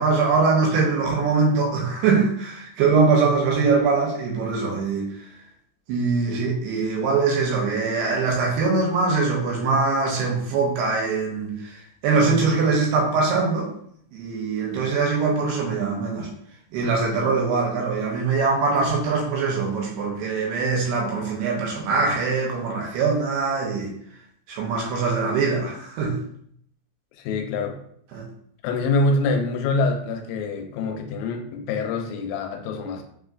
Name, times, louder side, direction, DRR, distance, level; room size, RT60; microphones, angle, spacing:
voice 1, 0.0-5.1 5.9-13.7 14.1-16.3 16.7-23.9 24.5-26.2 28.1-28.3, right 4 dB, 80° right, -2 dB, 2.5 m, -22 dB
voice 2, 27.2-27.8 28.6-33.0, left 3 dB, 90° left, 4 dB, 2.9 m, -25 dB
6.4 x 3.2 x 2.4 m, 0.68 s
omnidirectional pair, 5.2 m